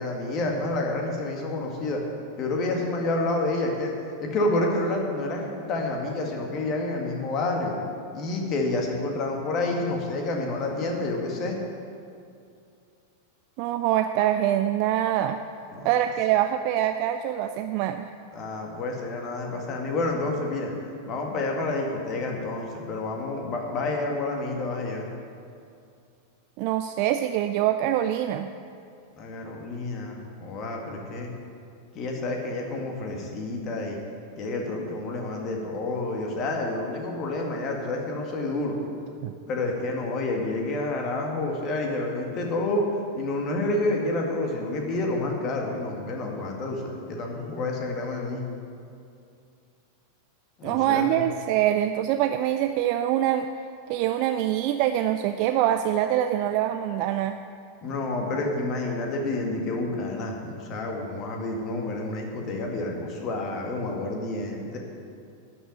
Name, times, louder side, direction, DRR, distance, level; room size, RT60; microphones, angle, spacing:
voice 1, 0.0-2.0 2.4-3.9 4.2-7.8 8.1-11.6 15.7-15.9 18.3-20.7 21.1-25.1 29.2-31.3 31.9-34.0 34.4-38.8 39.5-42.9 43.1-48.4 50.6-51.2 57.8-64.8, left 2 dB, 35° left, 1 dB, 2.0 m, -29 dB
voice 2, 13.6-15.4 15.8-18.1 26.6-28.5 39.2-39.3 50.6-53.5 53.9-57.4, right 12 dB, 45° right, 8 dB, 0.4 m, -24 dB
11.0 x 6.2 x 9.1 m, 2.4 s
figure-of-eight pair, 90°, 0 cm